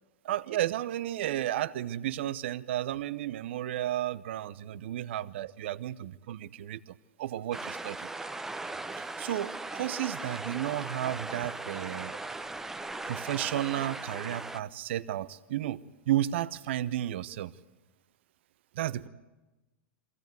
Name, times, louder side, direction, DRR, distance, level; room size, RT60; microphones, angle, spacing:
voice 1, 0.2-8.1 9.0-12.1 13.1-17.5 18.7-19.1, right 12 dB, 65° right, 15 dB, 0.8 m, -33 dB
sound 1, 7.5-14.6, right 2 dB, 5° right, 0.8 m, -38 dB
23.0 x 16.5 x 9.3 m, 1.1 s
hypercardioid pair, 105°, 7 cm